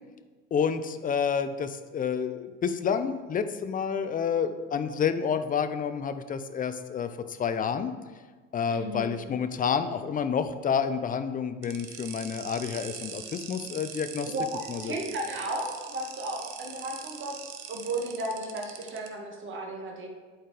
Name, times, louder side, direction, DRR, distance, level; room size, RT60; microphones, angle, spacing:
voice 1, 0.5-7.9 8.5-14.3 14.7-14.9, left 7 dB, 25° left, 10 dB, 0.5 m, -29 dB
voice 2, 8.7-9.2 14.3-17.3 17.7-20.1, right 1 dB, 35° right, 0 dB, 1.9 m, -34 dB
sound 1, 11.6-19.1, right 9 dB, 70° right, 1.0 m, -42 dB
11.5 x 4.4 x 3.4 m, 1.4 s
hypercardioid pair, 85°, 36 cm